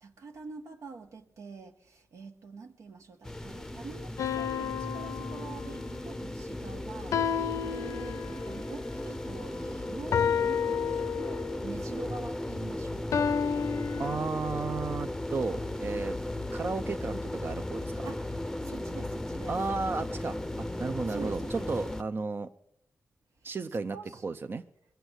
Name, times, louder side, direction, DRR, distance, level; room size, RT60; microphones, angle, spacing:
voice 1, 0.0-13.3 18.0-18.3 18.6-19.5 21.1-21.7 23.9-24.2, right 4 dB, 75° right, 1.5 m, -45 dB
sound 1, 3.2-22.0, left 1 dB, 10° left, 0.7 m, -36 dB
sound 2, 4.2-6.0 7.1-8.6 10.1-11.7 13.1-14.2, left 7 dB, 80° left, 0.7 m, -31 dB
voice 2, 14.0-16.2 16.5-18.1 19.5-22.5 23.4-24.0 24.2-24.6, right 4 dB, 45° right, 0.6 m, -33 dB
22.0 x 8.0 x 8.1 m
cardioid pair, 75°, 5 cm